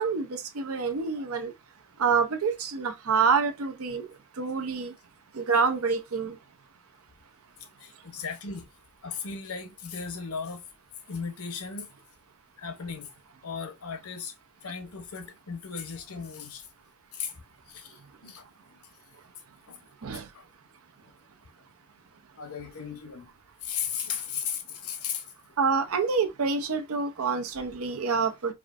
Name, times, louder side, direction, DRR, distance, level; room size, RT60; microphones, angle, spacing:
voice 1, 0.0-1.5 2.0-4.1 4.4-4.9 5.3-6.4 20.0-20.3 25.6-28.5, right 5 dB, 75° right, 0.6 m, -27 dB
voice 2, 7.8-8.7 9.0-10.6 11.1-11.9 12.6-13.1 13.4-14.3 14.6-16.7 17.1-17.3 17.7-18.8 19.7-19.8 20.3-20.4 21.0-21.1 22.4-23.3 23.6-25.2, left 6 dB, 75° left, 0.8 m, -36 dB
4.8 x 2.5 x 2.4 m
head